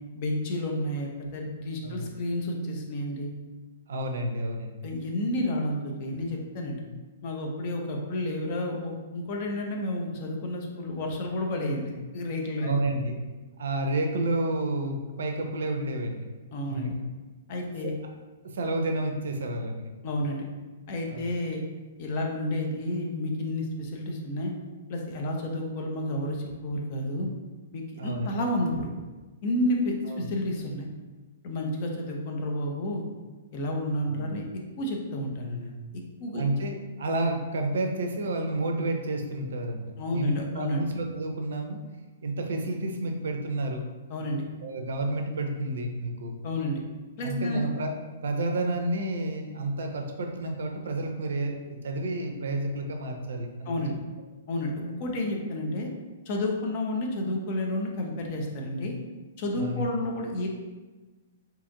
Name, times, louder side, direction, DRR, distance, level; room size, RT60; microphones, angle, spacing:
voice 1, 0.1-3.3 4.8-6.8 7.2-12.7 16.5-16.9 17.5-18.0 20.0-20.5 20.9-21.6 22.0-24.5 24.9-27.3 27.7-28.9 29.4-30.9 31.4-33.0 33.5-34.4 34.8-35.7 36.2-36.4 40.0-40.8 44.1-44.4 46.4-46.8 47.2-47.7 53.7-53.9 54.5-55.9 56.3-59.0 59.4-60.5, left 1 dB, 40° left, 1 dB, 0.5 m, -30 dB
voice 2, 3.9-4.9 12.6-13.2 13.6-16.3 16.7-16.9 17.8-17.9 18.4-19.9 21.1-21.3 28.0-28.4 30.1-30.3 34.1-34.3 36.3-39.8 40.1-41.8 42.2-43.8 44.6-46.3 47.2-53.8 59.6-59.8, right 2 dB, 60° right, 4 dB, 0.4 m, -30 dB
2.8 x 2.5 x 3.7 m, 1.2 s
figure-of-eight pair, 110°, 0 cm